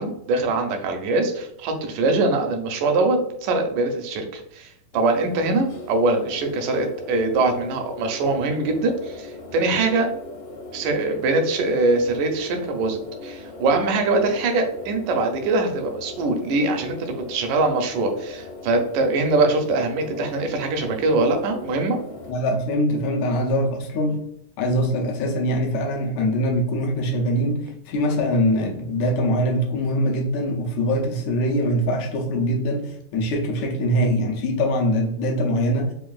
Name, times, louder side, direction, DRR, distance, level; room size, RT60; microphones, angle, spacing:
voice 1, 0.0-10.1 10.7-22.0, right 2 dB, 80° right, 4 dB, 2.1 m, -23 dB
sound 1, 4.9-22.3, left 2 dB, 65° left, 1.3 m, -39 dB
voice 2, 22.3-24.2 24.6-35.9, equal, 80° left, 1 dB, 1.7 m, -23 dB
5.2 x 2.4 x 2.3 m, 0.74 s
omnidirectional pair, 3.8 m